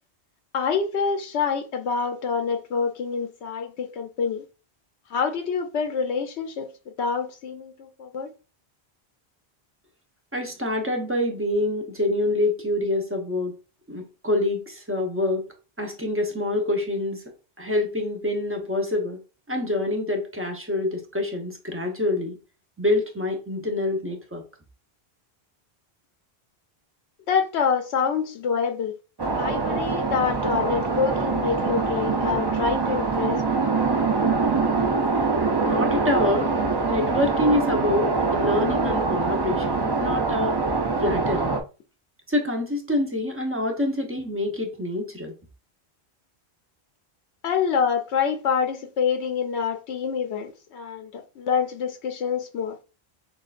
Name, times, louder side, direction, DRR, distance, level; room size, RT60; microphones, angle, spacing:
voice 1, 0.5-4.4 5.1-6.7 7.0-8.3 27.3-29.0 29.3-33.6 47.4-52.8, left 6 dB, 85° left, 0.9 m, -26 dB
voice 2, 10.3-13.5 13.9-15.4 15.8-17.2 17.6-19.2 19.5-22.4 22.8-24.4 35.6-36.5 36.9-40.6 41.0-41.5 42.3-45.4, left 1 dB, 15° right, 0.8 m, -26 dB
sound 1, 29.2-41.6, right 4 dB, 30° right, 0.5 m, -24 dB
6.2 x 2.5 x 2.5 m
omnidirectional pair, 1.1 m